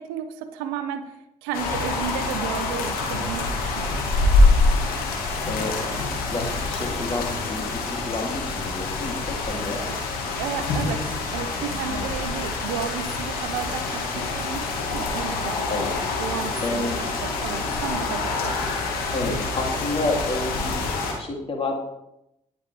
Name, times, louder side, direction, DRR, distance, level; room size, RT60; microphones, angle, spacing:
voice 1, 0.0-4.1 9.5-9.6 9.9-10.0 10.4-15.7 16.2-18.8, right 8 dB, 70° right, 10 dB, 0.9 m, -33 dB
sound 1, 1.5-21.1, left 3 dB, 60° left, 2.5 m, -26 dB
voice 2, 5.4-6.0 6.3-9.8 11.9-12.0 15.7-15.9 16.6-17.0 19.1-20.8 21.2-21.8, left 2 dB, 35° left, 1 dB, 3.3 m, -29 dB
19.0 x 6.5 x 3.6 m, 0.83 s
figure-of-eight pair, 40°, 17 cm